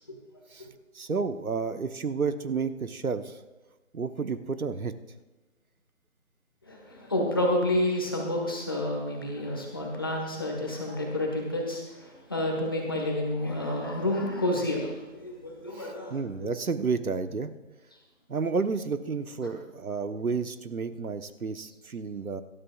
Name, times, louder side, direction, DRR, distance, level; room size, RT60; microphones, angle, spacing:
voice 1, 0.9-3.4 3.9-4.9 15.7-17.5 18.3-22.4, right 5 dB, 85° right, 10 dB, 1.1 m, -31 dB
voice 2, 6.6-16.5, left 1 dB, 15° left, 0 dB, 1.4 m, -29 dB
25.0 x 12.5 x 2.4 m, 1.2 s
figure-of-eight pair, 175°, 42 cm